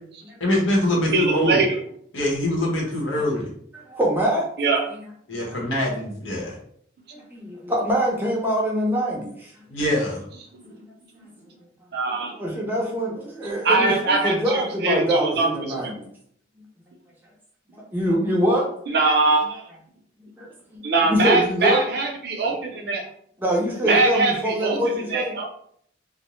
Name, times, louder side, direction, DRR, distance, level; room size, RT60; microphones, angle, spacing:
voice 1, 0.4-1.6 2.1-3.5 5.3-6.6 9.7-10.2, left 1 dB, 80° left, -2 dB, 1.0 m, -24 dB
voice 2, 1.1-1.8 4.6-4.9 11.9-12.3 13.6-15.5 15.8-15.9 18.9-19.6 20.8-23.0 23.8-25.5, right 3 dB, 55° right, 1 dB, 0.5 m, -22 dB
voice 3, 3.7-4.5 5.5-5.6 7.1-9.5 10.8-10.9 12.3-16.1 17.7-18.6 20.4-21.9 23.4-25.3, equal, 10° right, -3 dB, 0.5 m, -24 dB
2.5 x 2.0 x 3.0 m, 0.65 s
head